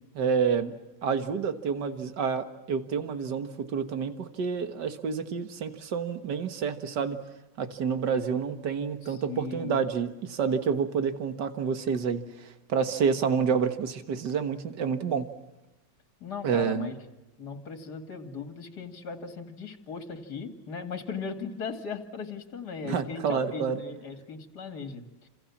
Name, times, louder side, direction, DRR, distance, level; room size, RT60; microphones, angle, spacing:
voice 1, 0.1-0.7 1.0-7.2 7.6-15.3 16.4-16.9 22.8-23.8, right 6 dB, 70° right, 9 dB, 2.2 m, -28 dB
voice 2, 9.0-9.8 16.2-17.0 17.4-25.3, left 5 dB, 60° left, 7 dB, 2.9 m, -38 dB
29.5 x 27.5 x 7.3 m, 0.99 s
omnidirectional pair, 1.9 m